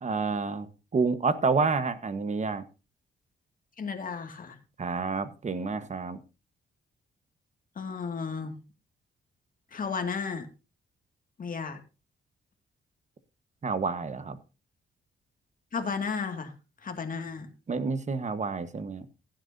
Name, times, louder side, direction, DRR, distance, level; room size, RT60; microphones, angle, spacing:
voice 1, 0.0-2.6 4.8-6.2 13.6-14.4 17.7-19.0, right 4 dB, 35° right, 12 dB, 1.3 m, -29 dB
voice 2, 3.8-4.6 7.8-8.6 9.7-10.5 11.4-11.8 15.7-16.5 16.8-17.5, left 5 dB, 45° left, 6 dB, 2.2 m, -33 dB
15.5 x 11.5 x 2.7 m, 0.31 s
cardioid pair, 110°, 20 cm